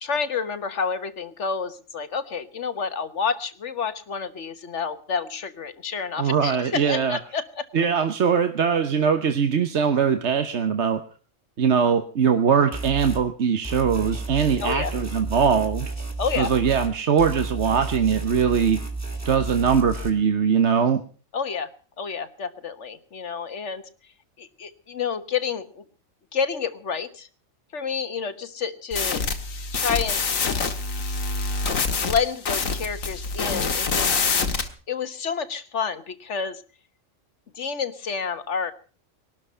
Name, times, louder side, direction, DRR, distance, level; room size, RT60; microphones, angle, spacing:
voice 1, 0.0-7.7 14.6-14.9 16.2-16.5 21.3-21.7 22.0-23.8 24.4-25.8 26.3-27.3 27.7-29.2 29.7-30.2 32.1-34.1 34.9-36.6 37.5-38.7, left 6 dB, 60° left, 12 dB, 1.5 m, -29 dB
voice 2, 6.2-7.2 7.7-11.0 11.6-15.9 16.4-18.8 19.2-21.0, right 6 dB, 60° right, 8 dB, 1.3 m, -21 dB
sound 1, 12.7-13.2 13.6-16.9 17.2-20.1, right 2 dB, 10° right, 2.5 m, -32 dB
sound 2, 28.9-34.7, left 4 dB, 80° left, 2.0 m, -25 dB
20.5 x 12.0 x 5.6 m, 0.41 s
omnidirectional pair, 1.4 m